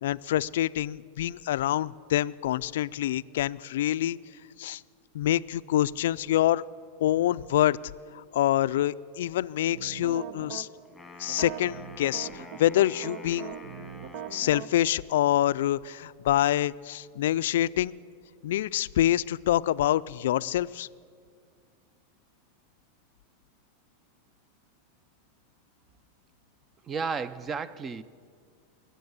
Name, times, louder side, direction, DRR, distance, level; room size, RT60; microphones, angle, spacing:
voice 1, 0.0-4.2 4.6-4.8 5.1-6.6 7.0-7.8 8.1-10.7 11.2-13.5 14.3-17.9 18.4-20.9, left 13 dB, 80° left, 18 dB, 0.3 m, -26 dB
sound 1, 9.7-10.6 11.3-14.7, right 8 dB, 65° right, 0.9 m, -40 dB
Wind instrument woodwind instrument, 10.8-14.8, left 3 dB, ahead, 1.8 m, -48 dB
voice 2, 26.8-28.0, right 5 dB, 20° right, 17 dB, 0.5 m, -32 dB
21.5 x 7.8 x 8.1 m, 2.1 s
supercardioid pair, 150°, 0 cm